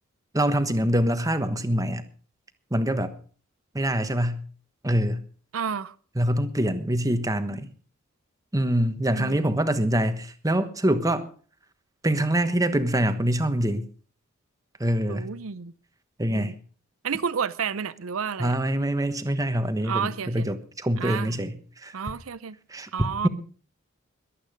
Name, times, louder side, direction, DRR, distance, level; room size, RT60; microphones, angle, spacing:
voice 1, 0.3-2.0 2.7-3.1 3.7-4.4 4.8-5.2 6.2-7.7 8.5-11.3 12.0-13.8 14.8-15.3 16.2-16.5 18.4-21.6 21.8-21.9 22.7-23.3, right 1 dB, 15° right, 1.2 m, -25 dB
voice 2, 5.5-5.9 9.1-9.6 15.1-15.7 16.3-16.5 17.0-18.6 19.8-20.5 21.0-21.3 21.9-22.6 22.9-23.3, right 6 dB, 90° right, 0.6 m, -31 dB
22.0 x 8.8 x 5.1 m
head